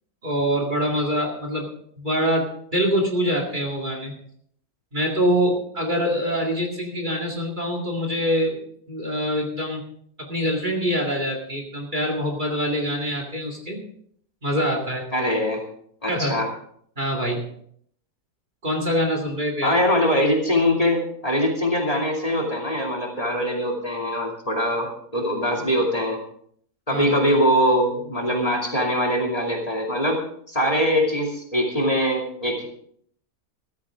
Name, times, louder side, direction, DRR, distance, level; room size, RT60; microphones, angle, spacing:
voice 1, 0.2-1.7 2.0-4.1 4.9-8.6 8.9-9.8 10.2-13.8 14.4-15.1 16.1-16.4 17.0-17.5 18.6-19.8 26.9-27.2, equal, 30° right, 2 dB, 2.3 m, -24 dB
voice 2, 15.1-15.6 16.0-16.5 19.6-26.2 26.9-30.2 30.5-32.7, equal, 25° left, -1 dB, 2.6 m, -22 dB
14.5 x 14.0 x 3.6 m, 0.65 s
omnidirectional pair, 1.6 m